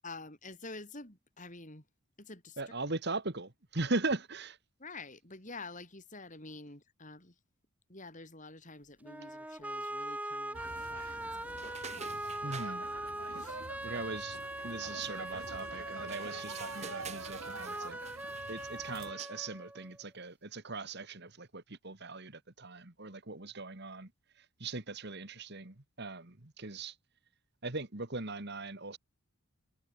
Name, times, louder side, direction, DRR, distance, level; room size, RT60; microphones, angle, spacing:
voice 1, 0.0-1.8 2.2-2.6 4.8-7.3 7.9-12.1 13.4-13.6, left 3 dB, 35° left, 6.5 m, -48 dB
voice 2, 2.6-4.6 12.4-12.9 13.8-14.4 14.6-18.0 18.5-24.1 24.6-26.9 27.6-29.0, right 3 dB, 50° right, 2.1 m, -39 dB
sound 1, 9.0-20.0, right 1 dB, 5° right, 1.6 m, -41 dB
sound 2, 10.5-19.1, right 3 dB, 70° right, 6.7 m, -47 dB
sound 3, 11.5-12.7 16.0-18.8 19.1-19.5, right 6 dB, 30° right, 5.7 m, -49 dB
head